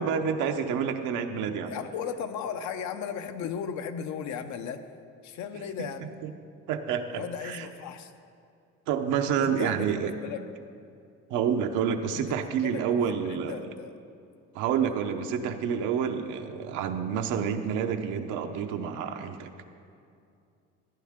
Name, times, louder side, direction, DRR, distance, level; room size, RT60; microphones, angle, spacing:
voice 1, 0.0-1.7 5.5-5.9 6.2-6.3 6.7-7.7 8.9-10.1 11.3-13.6 14.5-19.5, right 7 dB, 85° right, 6 dB, 0.9 m, -28 dB
voice 2, 1.6-4.9 5.2-6.1 7.1-8.1 9.4-9.9 10.2-10.4 12.1-14.0 14.8-15.0, left 7 dB, 70° left, 8 dB, 0.8 m, -36 dB
15.0 x 9.4 x 3.7 m, 2.5 s
cardioid pair, 110°, 30 cm